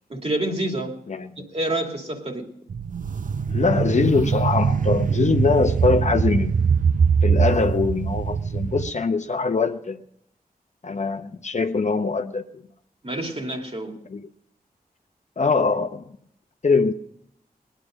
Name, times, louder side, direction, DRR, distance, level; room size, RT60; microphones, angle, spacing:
voice 1, 0.1-1.0 1.5-2.5 13.0-13.9, right 1 dB, 40° right, 2.4 m, -27 dB
voice 2, 1.1-1.5 3.5-6.6 7.2-10.0 10.8-12.6 14.1-14.3 15.4-16.0 16.6-16.9, left 4 dB, 50° left, 0.7 m, -22 dB
sound 1, 2.7-8.9, right 6 dB, 55° right, 0.5 m, -22 dB
19.5 x 10.0 x 6.2 m
wide cardioid pair, 80°, 16 cm